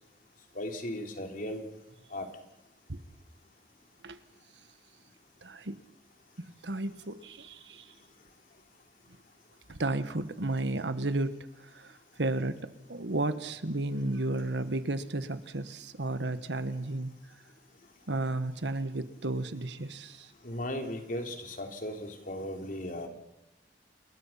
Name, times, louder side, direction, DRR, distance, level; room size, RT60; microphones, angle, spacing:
voice 1, 0.6-1.6 2.1-2.2 20.4-23.1, left 1 dB, 50° left, 4 dB, 3.6 m, -36 dB
voice 2, 5.4-5.8 6.4-7.9 9.7-17.2 18.1-20.3, right 2 dB, 90° right, 12 dB, 1.5 m, -33 dB
28.5 x 22.0 x 5.8 m, 0.89 s
head